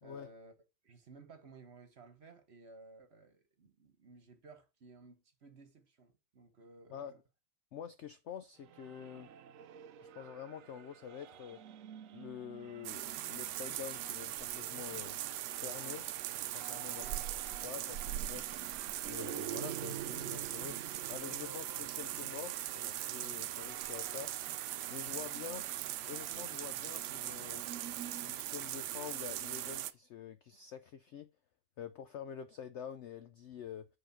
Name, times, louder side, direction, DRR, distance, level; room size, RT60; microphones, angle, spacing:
voice 1, 0.0-0.5 0.8-7.1 17.0-17.2, right 3 dB, 45° right, 1.3 m, -57 dB
voice 2, 6.9-7.2 7.7-9.3 10.0-11.6 12.1-15.2 15.5-16.1 16.5-17.1 17.6-18.4 19.0-20.8 21.1-24.3 24.9-25.7 26.1-27.6 28.2-31.3 31.8-33.9, left 8 dB, 80° left, 0.6 m, -47 dB
sound 1, 8.6-28.4, right 11 dB, 65° right, 0.8 m, -50 dB
sound 2, 12.8-29.9, right 13 dB, 85° right, 1.2 m, -40 dB
sound 3, 20.0-24.8, left 3 dB, 45° left, 0.9 m, -58 dB
8.1 x 3.8 x 5.7 m
omnidirectional pair, 1.8 m